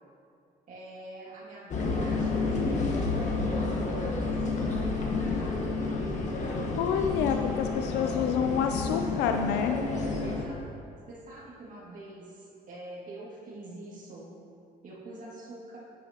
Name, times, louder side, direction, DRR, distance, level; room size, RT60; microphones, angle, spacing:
voice 1, 0.7-5.7 8.9-9.2 10.2-10.6 11.1-14.3 14.8-15.8, right 2 dB, 50° right, -5 dB, 2.3 m, -44 dB
sound 1, 1.7-10.4, left 3 dB, 45° left, 1.4 m, -30 dB
voice 2, 6.5-9.8, left 7 dB, 90° left, 5 dB, 0.5 m, -28 dB
9.6 x 9.5 x 3.0 m, 2.4 s
cardioid pair, 110°, 17 cm